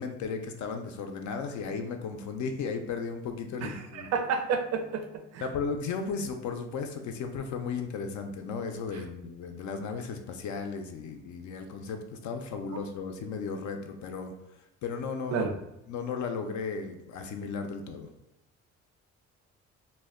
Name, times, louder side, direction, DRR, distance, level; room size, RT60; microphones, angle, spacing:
voice 1, 0.0-4.1 5.4-14.3 14.8-15.5 15.9-18.1, left 5 dB, 70° left, 5 dB, 0.4 m, -35 dB
voice 2, 3.6-5.0 5.3-5.4 15.3-15.6, right 6 dB, 55° right, 5 dB, 0.4 m, -30 dB
2.1 x 2.1 x 3.5 m, 0.91 s
cardioid pair, 90°, 30 cm